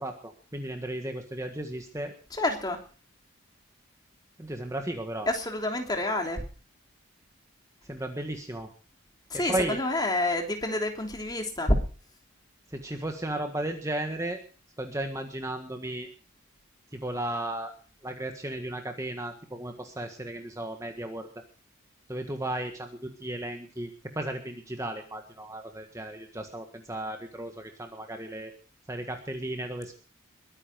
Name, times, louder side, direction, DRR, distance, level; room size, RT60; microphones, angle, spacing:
voice 1, 0.0-2.1 4.4-5.3 7.8-8.7 9.3-9.8 12.7-14.4 14.8-16.1 16.9-17.7 18.0-21.3 22.1-28.5 28.9-29.9, right 1 dB, 15° right, 5 dB, 1.6 m, -35 dB
voice 2, 2.3-2.8 5.3-6.4 9.3-11.8, left 1 dB, 20° left, 3 dB, 3.2 m, -28 dB
22.5 x 9.9 x 5.1 m, 0.38 s
head